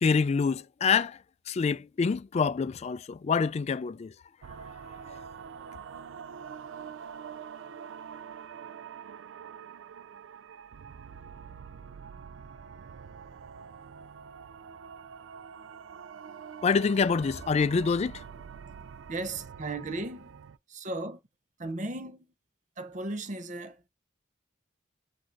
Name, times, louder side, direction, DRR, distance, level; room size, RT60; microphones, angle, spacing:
voice 1, 0.0-1.2 1.5-4.1 16.6-18.2, left 5 dB, 35° left, 0.3 m, -26 dB
sound 1, 4.4-20.6, right 7 dB, 80° right, 0.4 m, -45 dB
voice 2, 19.1-20.4 20.7-21.2 21.6-22.3 22.8-23.9, right 2 dB, 40° right, 0.8 m, -36 dB
6.2 x 2.7 x 3.1 m
head